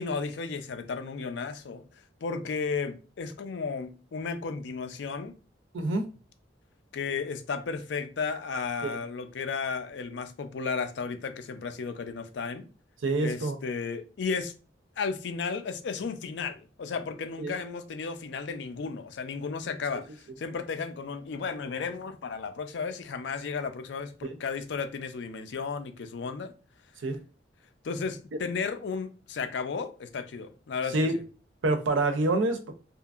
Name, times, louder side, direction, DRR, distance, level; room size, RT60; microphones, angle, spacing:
voice 1, 0.0-1.8 2.2-5.3 6.9-12.7 13.2-14.5 15.0-26.5 27.8-31.2, left 5 dB, 65° left, 0.4 m, -34 dB
voice 2, 5.7-6.0 8.8-9.0 13.0-13.6 17.4-17.5 27.0-27.2 30.9-31.1 31.6-32.6, right 2 dB, 80° right, 0.5 m, -26 dB
2.8 x 2.5 x 2.4 m
head